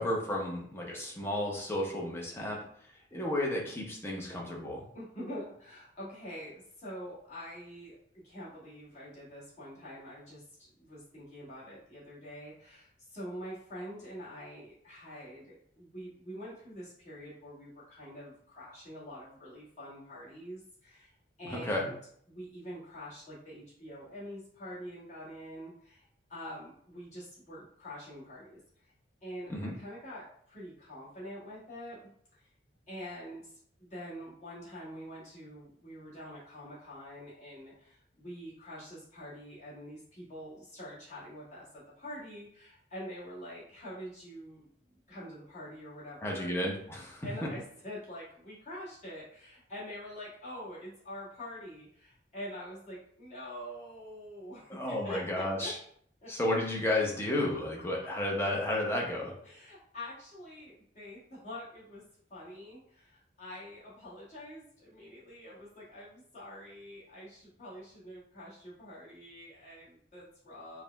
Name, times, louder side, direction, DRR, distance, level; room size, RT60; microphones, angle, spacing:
voice 1, 0.0-4.9 21.4-21.9 29.5-29.8 46.2-47.5 54.7-55.7 56.3-59.3, left 1 dB, 15° left, -2 dB, 0.7 m, -32 dB
voice 2, 4.9-8.0 8.2-21.9 22.3-28.9 29.2-32.5 32.9-44.7 45.1-46.5 47.2-55.7 56.2-56.3 59.4-70.8, equal, 40° left, -8 dB, 1.6 m, -45 dB
4.8 x 2.2 x 3.4 m, 0.63 s
head